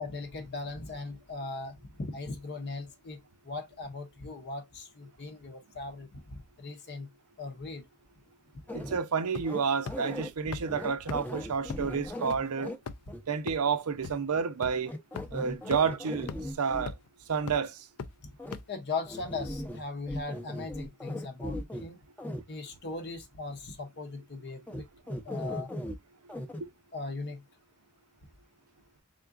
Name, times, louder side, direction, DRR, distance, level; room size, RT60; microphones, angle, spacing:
voice 1, 0.0-3.2 3.4-6.2 6.6-7.1 7.4-7.8 18.7-22.0 22.5-24.9 25.2-25.7 26.9-27.4, left 3 dB, 50° left, 0.7 m, -38 dB
sound 1, 8.7-9.0 9.4-10.3 10.7-12.8 13.1-13.2 14.9-16.9 18.4-18.5 19.1-19.8 20.1-21.9 22.2-22.4 24.7-24.8 25.1-25.9 26.3-26.6, left 1 dB, 5° left, 0.6 m, -38 dB
voice 2, 8.7-12.8 13.3-14.9 15.3-16.9 17.3-17.8 26.6-26.7, right 6 dB, 80° right, 0.6 m, -30 dB
sound 2, 9.3-9.6 9.9-10.0 10.5-10.6 11.1-11.2 11.7-11.8 12.3-12.4 12.9-13.1 13.5-13.6 14.0-14.1 14.6-14.7 15.1-15.2 15.7-15.8 16.3-16.4 16.9-17.1 17.5-17.6 18.0-18.1 18.5-18.6, left 5 dB, 80° left, 0.5 m, -37 dB
3.7 x 3.6 x 2.4 m
head